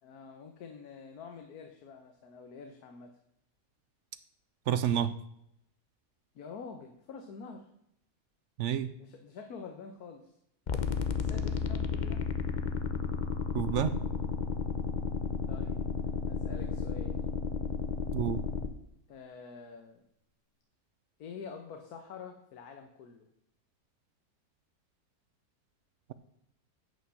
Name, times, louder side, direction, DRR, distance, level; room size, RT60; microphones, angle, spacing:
voice 1, 0.0-3.2 6.3-7.7 9.0-10.3 11.2-12.3 15.5-17.2 19.1-20.0 21.2-23.3, left 5 dB, 75° left, 5 dB, 1.4 m, -47 dB
voice 2, 4.7-5.1 8.6-8.9 13.5-14.0 18.1-18.4, right 9 dB, 70° right, 13 dB, 0.7 m, -29 dB
sound 1, 10.7-18.7, left 5 dB, 45° left, 0.6 m, -33 dB
9.2 x 5.3 x 7.6 m, 0.77 s
omnidirectional pair, 1.6 m